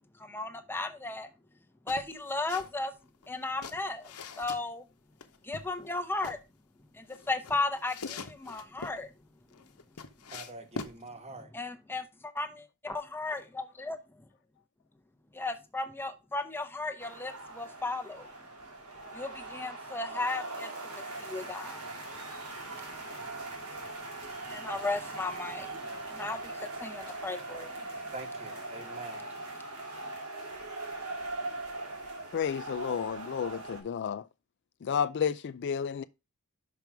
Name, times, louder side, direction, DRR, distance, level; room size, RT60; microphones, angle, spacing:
voice 1, 0.2-1.3 1.9-2.9 3.3-4.1 4.4-4.8 5.4-6.4 6.9-9.1 11.5-14.0 15.3-18.3 19.1-21.9 22.7-22.8 23.5-23.6 23.8-24.0 24.5-27.8, left 3 dB, 10° left, 0.7 m, -35 dB
sound 1, 1.9-2.7 3.0-4.6 5.2-6.4 7.1-9.0 9.5-11.0, left 4 dB, 85° left, 0.9 m, -43 dB
voice 2, 10.3-11.5 28.1-29.3, right 2 dB, 30° right, 1.2 m, -44 dB
sound 2, 17.0-33.8, right 2 dB, 85° right, 2.4 m, -41 dB
voice 3, 32.3-34.2 34.8-36.0, left 7 dB, 50° left, 0.4 m, -31 dB
6.0 x 5.2 x 4.6 m
head